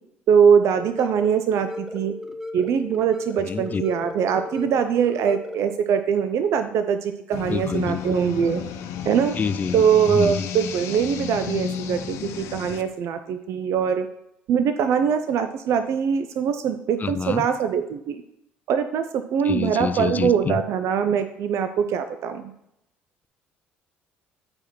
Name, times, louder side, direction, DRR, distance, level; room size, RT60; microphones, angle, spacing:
voice 1, 0.3-2.1 2.5-8.6 9.1-9.3 9.7-14.1 14.5-18.2 18.7-22.5, right 7 dB, 60° right, 9 dB, 0.6 m, -22 dB
sound 1, 0.7-5.7, left 2 dB, 10° right, 1.1 m, -36 dB
voice 2, 3.5-3.8 7.5-8.0 9.4-10.5 17.0-17.5 19.4-20.6, left 5 dB, 30° left, 13 dB, 0.6 m, -27 dB
sound 2, 7.3-12.8, left 8 dB, 65° left, 0.8 m, -32 dB
9.5 x 4.8 x 4.5 m, 0.81 s
hypercardioid pair, 60°, 5 cm